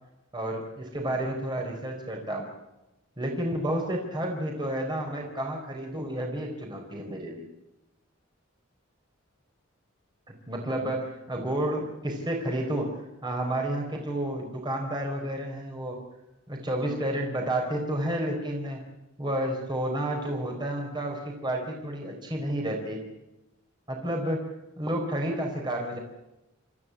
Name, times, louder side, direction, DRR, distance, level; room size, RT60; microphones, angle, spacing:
voice 1, 0.3-2.5 3.2-7.4 10.5-16.0 16.5-18.8 19.2-23.0 23.9-24.5 24.8-26.0, right 1 dB, 25° right, 1 dB, 4.3 m, -31 dB
30.0 x 14.5 x 8.4 m, 0.96 s
head